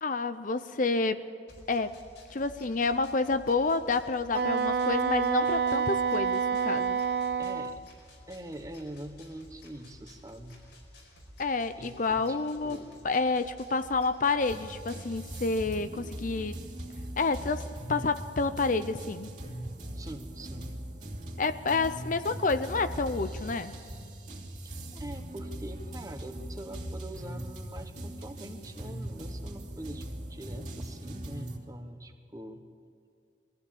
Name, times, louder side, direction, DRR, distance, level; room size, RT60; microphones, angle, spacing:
voice 1, 0.0-1.2 1.7-1.9 2.3-7.0 11.4-12.8 13.0-16.5 17.2-19.3 21.4-23.8, left 3 dB, 45° left, 11 dB, 0.6 m, -29 dB
sound 1, 1.5-15.5, left 1 dB, 85° left, 5.0 m, -53 dB
Wind instrument woodwind instrument, 4.3-7.8, right 6 dB, 60° right, 0.6 m, -28 dB
voice 2, 7.4-7.8 8.3-10.6 11.8-12.4 12.6-13.0 19.9-20.8 24.9-32.7, right 1 dB, 20° right, 7 dB, 1.2 m, -44 dB
sound 2, 14.4-31.6, right 1 dB, 45° right, 3.0 m, -40 dB
22.0 x 15.5 x 8.6 m, 2.4 s
head